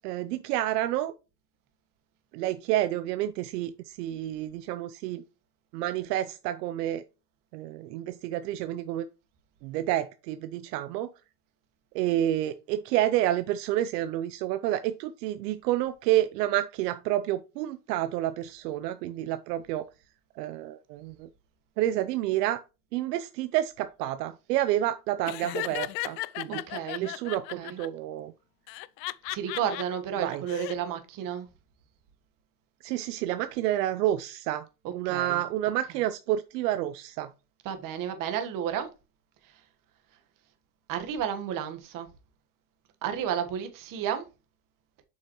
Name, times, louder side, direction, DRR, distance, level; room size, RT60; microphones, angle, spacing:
voice 1, 0.0-1.1 2.3-5.2 5.7-7.0 7.5-9.1 9.6-11.1 11.9-19.9 20.4-21.3 21.8-22.6 22.9-26.6 27.0-28.3 30.2-30.4 32.8-34.6 34.9-37.3, right 13 dB, 70° right, 0.7 m, -29 dB
Laughter, 25.2-27.9 28.7-29.8 30.3-30.7, left 18 dB, 85° left, 0.6 m, -35 dB
voice 2, 26.5-27.1 27.6-27.8 29.3-31.5 34.8-35.4 37.6-38.9 40.9-42.1 43.0-44.2, right 9 dB, 40° right, 1.4 m, -32 dB
7.8 x 5.6 x 3.0 m
supercardioid pair, 130°, 49 cm